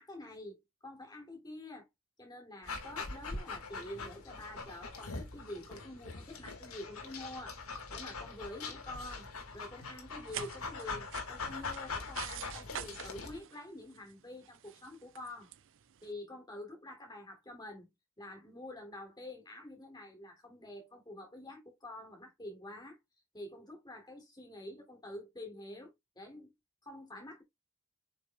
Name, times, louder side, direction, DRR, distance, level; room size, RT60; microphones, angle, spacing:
voice 1, 0.0-1.9 2.2-7.6 7.9-9.3 9.5-15.5 16.0-17.9 18.2-23.0 23.3-26.5 26.8-27.4, left 1 dB, 20° left, 3.5 m, -47 dB
Dog, 2.7-13.4, left 4 dB, 80° left, 2.3 m, -42 dB
sound 1, 10.1-16.1, right 11 dB, 60° right, 0.5 m, -48 dB
7.9 x 6.0 x 2.5 m
head